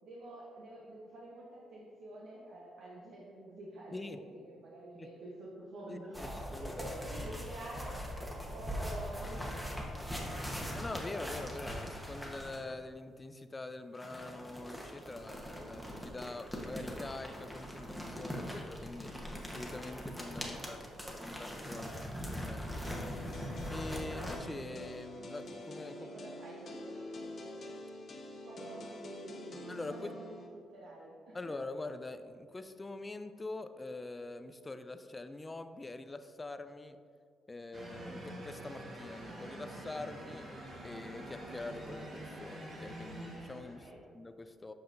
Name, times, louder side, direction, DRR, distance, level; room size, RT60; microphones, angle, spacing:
voice 1, 0.0-9.9 20.4-21.2 21.8-22.1 25.9-27.6 28.4-29.6 29.9-31.4 43.7-44.0, right 1 dB, 75° right, -5 dB, 1.0 m, -49 dB
voice 2, 5.9-6.8 10.7-19.1 19.5-20.8 21.3-23.4 23.7-26.1 29.7-30.1 31.3-37.0 37.5-40.5 40.8-43.9 44.1-44.7, left 2 dB, 20° left, 9 dB, 0.4 m, -44 dB
sound 1, 6.1-12.7 13.9-24.4, equal, 5° right, 1.1 m, -41 dB
sound 2, 22.8-30.5, left 1 dB, 50° left, 0.9 m, -46 dB
sound 3, 37.7-44.0, right 1 dB, 50° right, 1.5 m, -46 dB
7.8 x 5.5 x 2.6 m, 2.1 s
cardioid pair, 90°, 0 cm